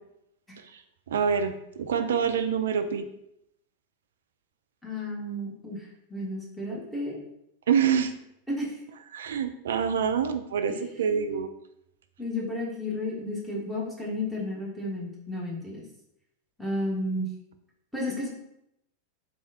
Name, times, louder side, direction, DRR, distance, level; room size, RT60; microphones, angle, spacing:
voice 1, 1.1-3.1 7.7-8.1 9.1-11.5, right 7 dB, 65° right, 9 dB, 0.3 m, -26 dB
voice 2, 4.8-7.2 8.5-8.8 10.7-11.4 12.2-15.8 16.6-17.3 17.9-18.3, left 1 dB, ahead, -5 dB, 1.3 m, -33 dB
4.1 x 3.5 x 2.7 m, 0.80 s
figure-of-eight pair, 90°, 0 cm